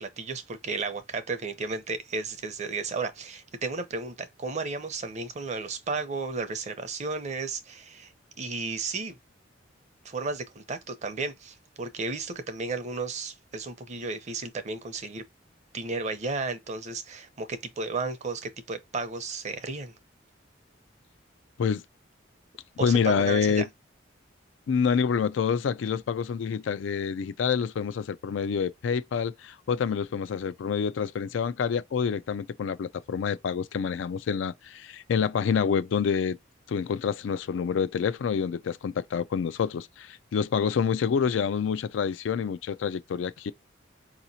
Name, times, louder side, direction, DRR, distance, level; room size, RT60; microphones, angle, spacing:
voice 1, 0.0-8.1 8.4-9.2 10.0-15.2 15.7-19.9 22.8-23.6, right 4 dB, 40° right, 0.6 m, -33 dB
voice 2, 22.8-23.6 24.7-36.4 36.7-43.5, left 6 dB, 75° left, 0.3 m, -27 dB
4.8 x 2.9 x 2.7 m
head